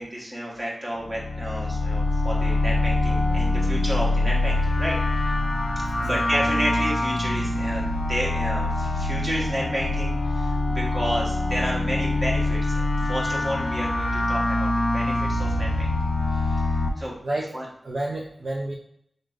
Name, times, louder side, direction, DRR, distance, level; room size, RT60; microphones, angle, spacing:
voice 1, 0.0-5.0 6.0-15.9 16.3-17.1 17.5-17.6, equal, 30° right, -4 dB, 1.2 m, -31 dB
sound 1, 1.0-16.9, left 2 dB, 60° left, 0.5 m, -24 dB
voice 2, 6.0-6.4 17.2-17.5 17.8-18.7, right 1 dB, 55° right, -2 dB, 0.4 m, -30 dB
3.7 x 3.7 x 2.4 m, 0.71 s
wide cardioid pair, 90°, 0 cm